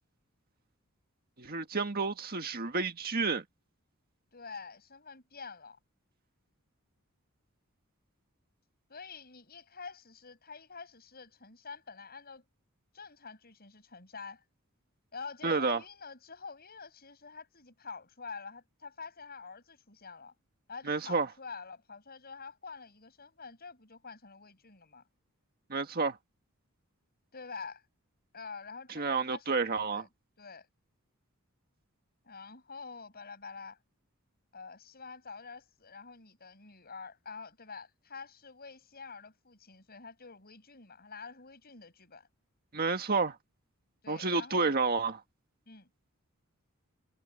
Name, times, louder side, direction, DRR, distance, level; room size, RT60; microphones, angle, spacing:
voice 1, 1.4-3.4 15.4-15.8 20.9-21.3 25.7-26.2 29.0-30.0 42.7-43.4 44.1-45.2, right 4 dB, 45° right, 1.7 m, -30 dB
voice 2, 4.3-5.8 8.9-12.4 12.9-14.4 15.1-20.3 20.7-25.0 27.3-27.8 28.3-30.1 30.4-30.7 32.2-33.8 34.5-42.3 44.0-44.8 45.7-45.9, left 5 dB, 45° left, 7.2 m, -47 dB
head